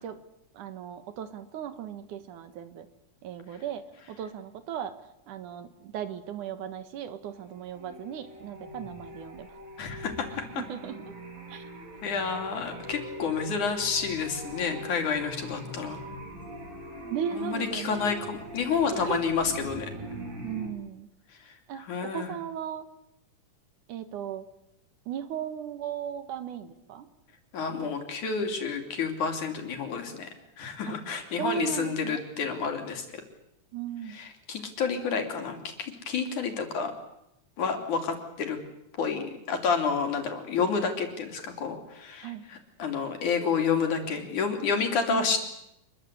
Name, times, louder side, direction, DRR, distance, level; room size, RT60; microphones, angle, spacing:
voice 1, 0.5-2.9 3.2-3.8 4.1-5.0 5.3-9.6 10.6-11.1 11.5-11.6 17.1-18.0 18.9-19.2 20.4-21.1 21.7-22.9 23.9-24.5 25.1-27.1 30.9-31.0 31.4-32.2 33.7-34.2 42.2-42.5 45.1-45.3, right 9 dB, 80° right, 10 dB, 3.0 m, -36 dB
sound 1, 7.3-20.7, equal, 55° right, 6.0 m, -42 dB
voice 2, 9.8-10.4 12.0-16.0 17.3-19.9 21.3-22.3 27.5-30.3 30.6-33.2 34.1-36.9 37.6-38.6 38.9-45.5, left 5 dB, 75° left, 4 dB, 4.5 m, -30 dB
26.5 x 22.0 x 8.3 m, 0.83 s
omnidirectional pair, 3.6 m